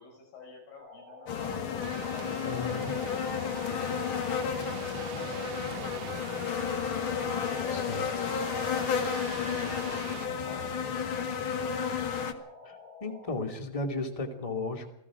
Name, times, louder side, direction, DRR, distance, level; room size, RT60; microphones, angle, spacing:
voice 1, 0.0-1.6 2.0-6.8 7.3-8.4 8.8-11.7, left 4 dB, 90° left, 2 dB, 6.9 m, -49 dB
sound 1, 0.8-13.4, left 3 dB, 50° left, 6.1 m, -49 dB
sound 2, 1.3-12.3, left 7 dB, 65° left, 1.2 m, -32 dB
sound 3, 1.8-10.3, right 13 dB, 70° right, 2.2 m, -45 dB
voice 2, 2.4-3.0 7.7-8.3 12.6-14.9, left 2 dB, 15° left, 5 dB, 1.6 m, -35 dB
28.5 x 19.0 x 5.0 m, 0.80 s
omnidirectional pair, 4.4 m